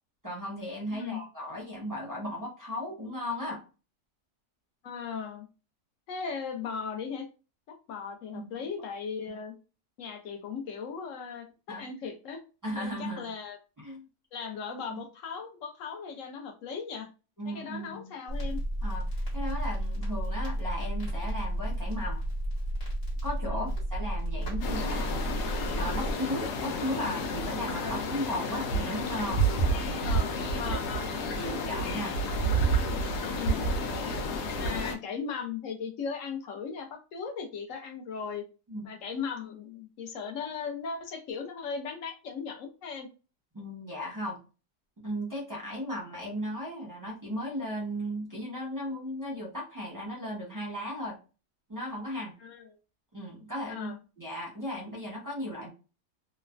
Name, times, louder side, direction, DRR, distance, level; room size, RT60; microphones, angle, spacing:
voice 1, 0.2-3.6 8.3-8.5 9.3-9.4 11.7-11.9 12.6-13.3 13.8-14.1 14.9-15.0 17.4-18.1 18.8-22.3 23.2-25.3 25.8-29.5 29.8-30.2 30.5-30.7 31.4-32.2 38.7-38.9 43.5-44.4 45.0-51.2 51.7-52.3 53.1-55.7, equal, 20° right, -6 dB, 0.6 m, -36 dB
voice 2, 4.8-5.5 6.1-7.3 7.9-9.5 10.0-12.4 12.7-13.6 14.3-17.1 17.5-18.6 23.5-23.7 27.8-28.1 30.0-31.1 33.3-33.6 34.6-38.4 38.8-43.1 52.4-52.8 53.7-54.0, left 6 dB, 65° left, 4 dB, 0.8 m, -37 dB
Crackle, 18.3-26.1, right 1 dB, 40° left, 1.3 m, -32 dB
sound 1, 24.6-34.9, right 1 dB, 85° left, 1.1 m, -30 dB
3.1 x 2.0 x 2.4 m, 0.32 s
omnidirectional pair, 1.7 m